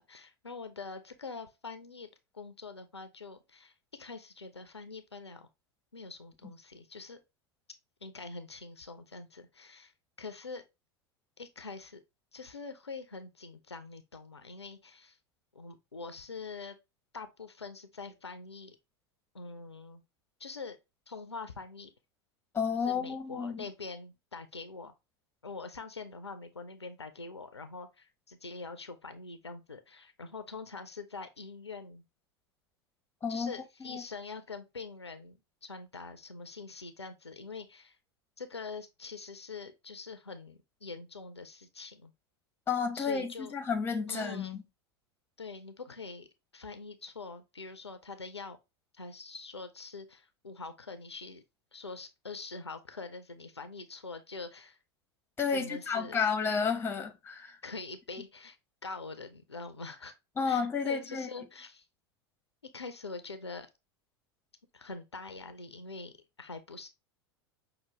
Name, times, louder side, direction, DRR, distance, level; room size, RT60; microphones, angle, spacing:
voice 1, 0.0-2.1 2.3-5.5 5.9-7.2 8.0-9.9 10.2-10.6 11.4-12.0 12.3-15.2 15.5-16.8 17.1-18.8 19.3-20.0 20.4-20.8 21.1-21.9 22.7-24.9 25.4-32.0 33.3-38.0 38.4-42.1 42.9-43.5 44.1-44.6 45.4-46.3 46.5-48.6 48.9-51.4 51.7-54.8 55.5-56.3 57.6-58.6 58.8-60.1 60.4-61.9 62.7-63.7 64.7-66.9, left 4 dB, 85° left, 0.4 m, -44 dB
voice 2, 22.5-23.6 33.2-33.5 33.8-34.0 42.7-44.6 55.4-57.6 60.4-61.3, left 5 dB, 15° left, 0.8 m, -31 dB
5.6 x 2.2 x 3.0 m
figure-of-eight pair, 85°, 14 cm